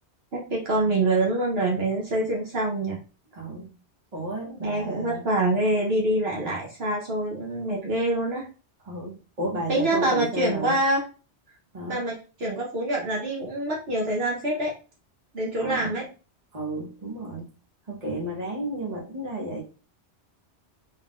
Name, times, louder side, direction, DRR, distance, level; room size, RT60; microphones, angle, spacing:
voice 1, 0.3-3.0 4.4-8.5 9.7-11.0 11.9-14.7 15.3-16.0, right 1 dB, 65° right, 1.2 m, -25 dB
voice 2, 3.3-3.7 4.1-5.2 8.8-10.8 11.7-12.0 15.6-15.9 16.5-17.5 17.9-19.6, right 1 dB, 35° right, 1.2 m, -32 dB
3.8 x 3.6 x 2.5 m
omnidirectional pair, 1.2 m